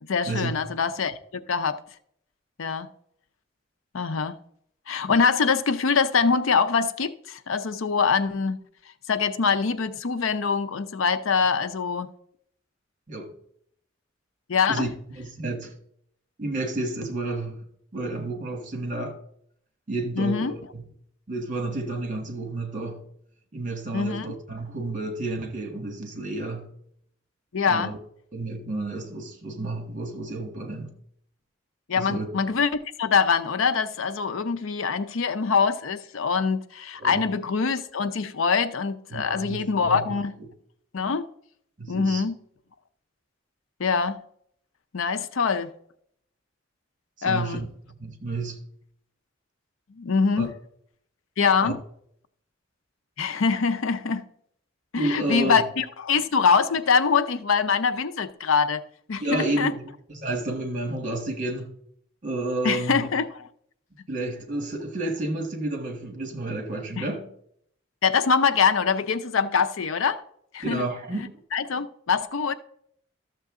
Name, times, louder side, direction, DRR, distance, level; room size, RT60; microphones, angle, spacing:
voice 1, 0.0-1.8 2.6-2.9 3.9-4.4 4.9-8.6 9.1-12.1 14.5-14.9 20.1-20.5 23.9-24.3 27.5-27.9 31.9-32.7 33.0-40.3 40.9-41.2 41.9-42.4 43.8-44.2 44.9-45.7 47.2-47.6 50.0-50.5 51.4-51.8 53.2-54.3 54.9-58.8 59.1-59.7 62.6-63.3 67.0-67.1 68.0-70.2 70.5-70.9 71.5-72.5, left 5 dB, 85° left, 0.6 m, -24 dB
voice 2, 14.7-15.7 16.4-17.7 17.9-19.2 19.9-20.8 21.3-23.0 23.5-26.7 27.6-28.0 28.3-30.9 31.9-32.3 37.0-37.3 39.1-40.1 41.8-42.2 47.2-48.6 50.4-50.5 51.6-51.8 54.9-55.6 59.2-61.7 62.2-63.0 64.1-67.3 70.6-71.2, right 2 dB, 40° right, 1.6 m, -31 dB
13.0 x 6.9 x 3.7 m
head